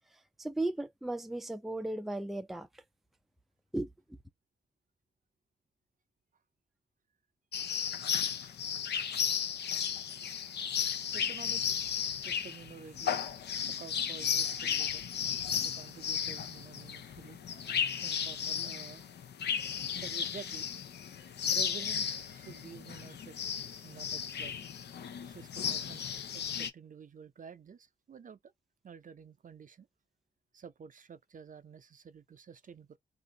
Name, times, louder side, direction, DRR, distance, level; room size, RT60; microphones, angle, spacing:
voice 1, 0.4-2.7 3.7-3.9, right 2 dB, ahead, 0.5 m, -35 dB
sound 1, 7.5-26.7, left 8 dB, 70° left, 0.6 m, -34 dB
voice 2, 11.1-11.7 12.2-13.2 13.8-15.0 15.5-19.0 19.9-20.7 21.5-23.4 23.8-24.7 25.3-28.4 28.8-29.9 30.5-33.0, right 6 dB, 50° right, 0.5 m, -50 dB
2.6 x 2.5 x 3.9 m
cardioid pair, 60°, 18 cm